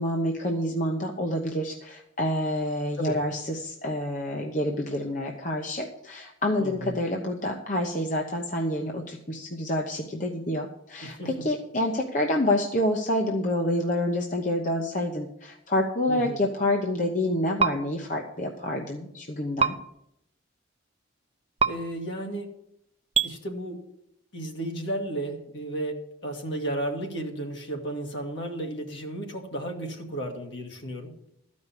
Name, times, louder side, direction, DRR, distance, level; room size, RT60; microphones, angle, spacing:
voice 1, 0.0-19.7, left 1 dB, 40° left, 1 dB, 0.9 m, -28 dB
voice 2, 6.6-7.0 11.0-11.5 16.1-16.4 21.7-22.5 23.2-23.8 24.3-31.1, right 1 dB, 60° left, 2 dB, 2.0 m, -33 dB
sound 1, 17.6-17.7 19.6-19.7 21.6-21.7 23.1-23.3, right 5 dB, 30° right, 0.5 m, -22 dB
13.5 x 5.3 x 8.2 m, 0.77 s
head